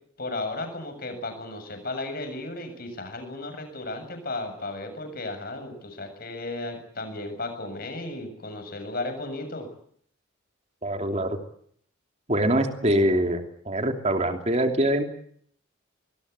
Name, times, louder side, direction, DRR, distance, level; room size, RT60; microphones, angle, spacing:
voice 1, 0.2-9.7, left 2 dB, 45° left, 6 dB, 7.5 m, -34 dB
voice 2, 10.8-11.4 12.3-15.0, right 1 dB, 30° right, 5 dB, 3.0 m, -24 dB
26.0 x 21.5 x 8.4 m, 0.64 s
head